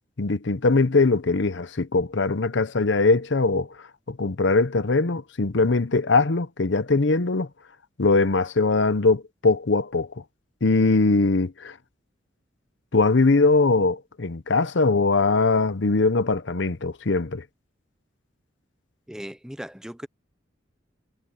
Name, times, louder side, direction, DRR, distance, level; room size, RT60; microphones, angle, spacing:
voice 1, 0.2-3.7 4.1-7.5 8.0-10.1 10.6-11.7 12.9-17.4, left 3 dB, 65° left, 0.8 m, -21 dB
voice 2, 19.1-20.1, equal, 5° right, 0.7 m, -37 dB
head